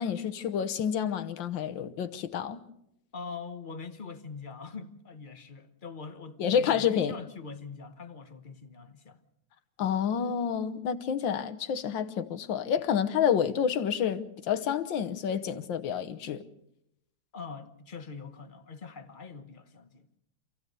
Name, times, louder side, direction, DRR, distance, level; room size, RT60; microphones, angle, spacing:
voice 1, 0.0-2.6 6.4-7.1 9.8-16.4, left 8 dB, 85° left, 1.7 m, -29 dB
voice 2, 3.1-9.2 17.3-20.1, left 5 dB, 30° left, 1.0 m, -43 dB
27.5 x 15.0 x 6.8 m
omnidirectional pair, 2.0 m